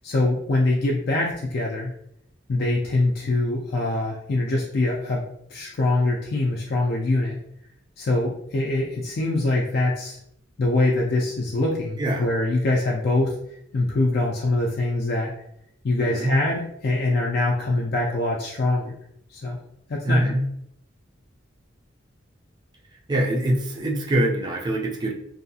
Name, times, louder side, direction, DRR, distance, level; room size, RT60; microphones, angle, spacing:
voice 1, 0.0-1.9 2.5-5.2 5.5-7.4 8.0-10.2 10.6-13.4 13.7-15.3 15.8-18.9 19.3-19.6 19.9-20.2, left 2 dB, 50° left, -2 dB, 0.4 m, -23 dB
voice 2, 12.0-12.3 16.0-16.4 20.0-20.4 23.1-25.1, right 1 dB, 20° right, -1 dB, 0.4 m, -23 dB
2.6 x 2.4 x 2.7 m, 0.73 s
head